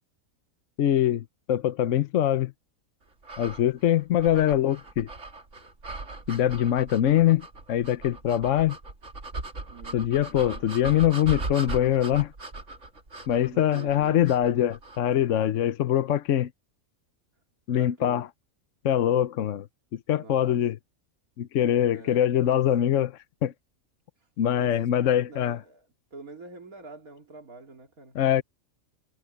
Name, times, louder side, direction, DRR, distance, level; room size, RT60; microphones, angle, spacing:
voice 1, 0.8-2.5 3.4-5.1 6.3-8.8 9.9-12.3 13.3-16.5 17.7-18.3 18.8-19.7 19.9-20.8 21.4-23.1 23.4-23.5 24.4-25.6 28.1-28.4, left 11 dB, 65° left, 1.0 m, -23 dB
sound 1, 3.2-15.1, right 2 dB, 55° right, 3.2 m, -39 dB
voice 2, 9.7-10.2 13.5-14.4 17.7-18.2 20.1-20.6 21.9-22.7 24.2-24.3 24.6-25.9 26.1-28.2, right 3 dB, 80° right, 3.4 m, -45 dB
omnidirectional pair, 1.5 m